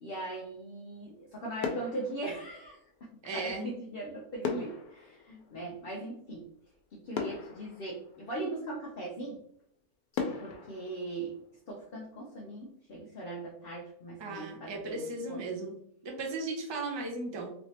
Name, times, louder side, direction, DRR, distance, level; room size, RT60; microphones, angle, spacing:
voice 1, 0.0-6.5 6.9-9.4 10.4-11.4 11.7-15.4, right 2 dB, 55° left, -2 dB, 0.7 m, -40 dB
sound 1, 0.9-1.3 1.6-3.1 4.4-6.3 6.8-6.9 7.1-8.7 9.3-9.4 10.1-12.0 12.4-12.6, left 5 dB, 80° left, 1.1 m, -39 dB
voice 2, 3.2-3.7 14.2-15.8 16.0-17.5, right 2 dB, 40° right, 0 dB, 0.3 m, -36 dB
3.2 x 3.1 x 2.8 m, 0.68 s
omnidirectional pair, 1.6 m